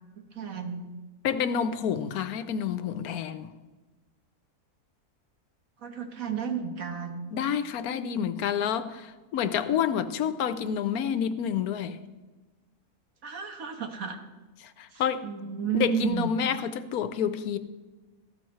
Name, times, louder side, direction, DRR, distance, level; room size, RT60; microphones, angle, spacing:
voice 1, 0.3-0.8 5.8-7.3 13.2-14.2 14.9-16.3, right 7 dB, 65° right, 1.6 m, -32 dB
voice 2, 1.2-3.5 7.3-12.0 14.8-15.2 15.7-17.6, left 8 dB, 85° left, 1.2 m, -28 dB
14.5 x 12.5 x 3.2 m
omnidirectional pair, 1.6 m